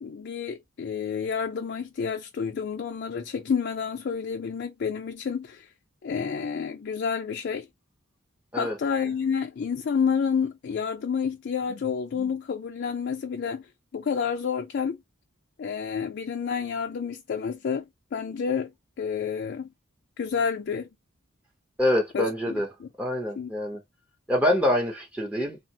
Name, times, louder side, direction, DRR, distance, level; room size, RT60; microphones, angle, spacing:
voice 1, 0.0-5.7 6.0-7.7 8.6-13.7 13.9-15.0 15.6-18.7 19.0-19.7 20.2-20.9 22.1-22.3 22.8-22.9 23.4-23.5, left 6 dB, 55° left, 0.3 m, -29 dB
voice 2, 21.8-22.7 23.0-23.8 24.3-25.6, left 1 dB, 5° right, 0.5 m, -25 dB
3.2 x 2.1 x 2.7 m
head